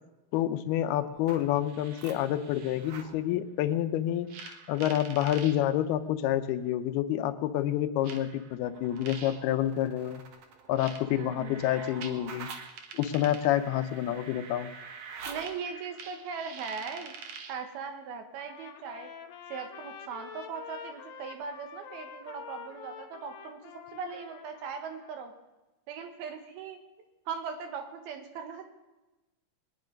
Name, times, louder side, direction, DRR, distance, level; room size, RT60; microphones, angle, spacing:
voice 1, 0.3-10.2 10.7-12.5 12.9-14.7, left 12 dB, 90° left, 11 dB, 2.8 m, -28 dB
sound 1, 1.1-3.2 4.3-5.6 6.7-6.8 8.0-17.6, right 5 dB, 60° right, 2.1 m, -45 dB
voice 2, 11.1-11.6 15.3-17.1 17.5-19.1 19.5-23.6 23.9-25.3 25.9-26.8 27.3-28.7, right 6 dB, 80° right, 5 dB, 3.3 m, -39 dB
Trumpet, 18.3-25.3, left 7 dB, 70° left, 2.9 m, -46 dB
23.0 x 9.9 x 5.2 m, 1.1 s
omnidirectional pair, 4.4 m